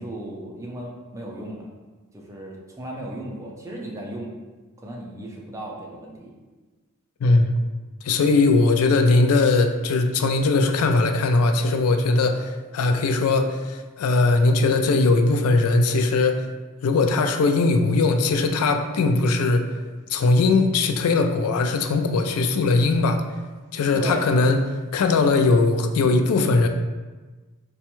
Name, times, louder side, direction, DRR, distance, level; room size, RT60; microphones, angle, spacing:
voice 1, 0.0-1.7 2.1-4.3 4.8-6.4 7.2-7.4 8.4-8.5 23.9-24.3, right 1 dB, 15° right, -2 dB, 0.5 m, -35 dB
voice 2, 7.2-7.5 8.0-16.5 16.8-19.6 20.1-23.2 23.7-24.6 24.9-26.7, left 3 dB, 75° left, 6 dB, 0.3 m, -20 dB
4.1 x 2.2 x 3.0 m, 1.3 s
head